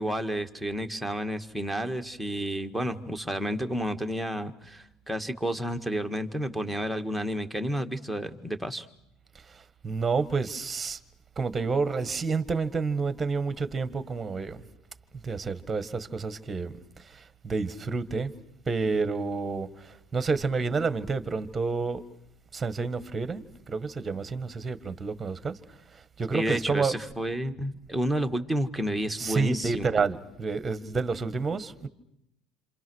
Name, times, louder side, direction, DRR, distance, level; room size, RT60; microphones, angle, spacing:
voice 1, 0.0-8.9 26.3-30.0, equal, ahead, 1.8 m, -31 dB
voice 2, 9.8-11.0 11.4-14.6 15.2-16.7 17.1-18.3 18.7-22.0 22.5-25.6 26.2-26.9 29.2-31.9, right 4 dB, 20° right, 1.7 m, -29 dB
28.0 x 27.0 x 6.4 m
cardioid pair, 130°, 0 cm